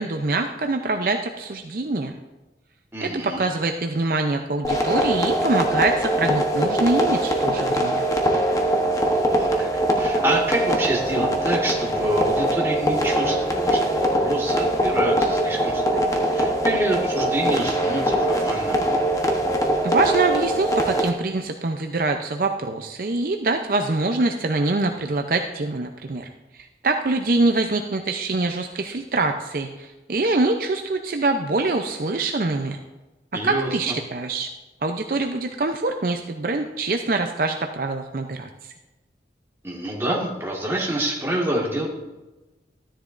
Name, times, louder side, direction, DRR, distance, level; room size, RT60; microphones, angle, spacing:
voice 1, 0.0-2.1 3.1-8.0 19.8-26.3 26.6-32.8 33.4-34.5 34.8-38.5, right 3 dB, 55° right, 4 dB, 0.5 m, -24 dB
voice 2, 2.9-3.4 9.3-9.7 10.0-18.9 33.3-34.0 39.6-41.9, right 1 dB, 15° right, -2 dB, 1.7 m, -27 dB
sound 1, 4.6-21.1, right 1 dB, 20° left, 0.9 m, -22 dB
13.0 x 10.0 x 2.5 m, 1.1 s
head